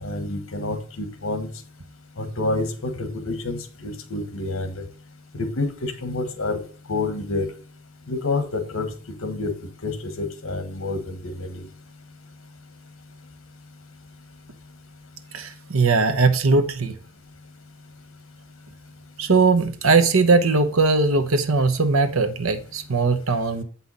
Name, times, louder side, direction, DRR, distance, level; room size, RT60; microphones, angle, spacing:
voice 1, 0.0-1.5 2.2-4.8 5.3-6.6 6.9-7.5 8.1-8.9 9.2-9.5 9.8-11.7, left 2 dB, 75° left, 8 dB, 1.3 m, -28 dB
voice 2, 15.3-16.9 19.2-23.6, right 3 dB, 80° right, 9 dB, 0.9 m, -19 dB
7.6 x 5.6 x 4.0 m, 0.41 s
head